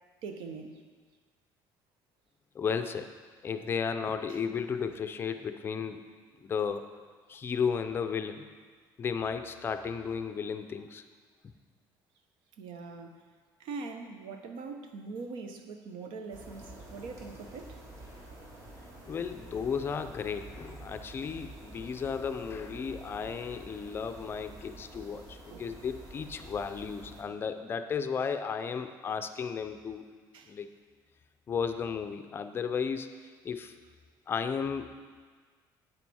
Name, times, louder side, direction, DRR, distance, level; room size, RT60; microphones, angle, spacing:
voice 1, 0.2-0.8 4.3-4.4 12.6-13.3 13.6-17.8 25.5-25.8 27.3-27.4 30.3-30.6, right 4 dB, 80° right, 5 dB, 1.0 m, -42 dB
voice 2, 2.5-3.1 3.4-6.0 6.4-6.9 7.3-8.5 9.0-11.0 19.1-30.1 30.5-30.7 31.5-33.8 34.3-34.9, left 6 dB, 30° left, 8 dB, 0.4 m, -34 dB
sound 1, 16.3-27.2, right 1 dB, 40° right, 1.8 m, -48 dB
9.1 x 8.2 x 4.2 m, 1.5 s
cardioid pair, 160°, 8 cm